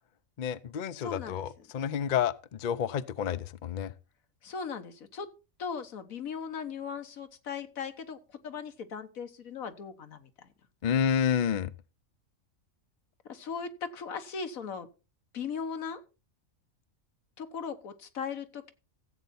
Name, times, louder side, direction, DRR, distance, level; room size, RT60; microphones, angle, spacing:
voice 1, 0.4-3.9 10.8-11.7, left 8 dB, 50° left, 0.6 m, -29 dB
voice 2, 1.0-1.6 4.4-5.3 5.6-10.5 13.3-14.9 15.3-16.0 17.4-18.7, left 6 dB, 85° left, 1.6 m, -38 dB
15.0 x 8.1 x 4.2 m
omnidirectional pair, 1.4 m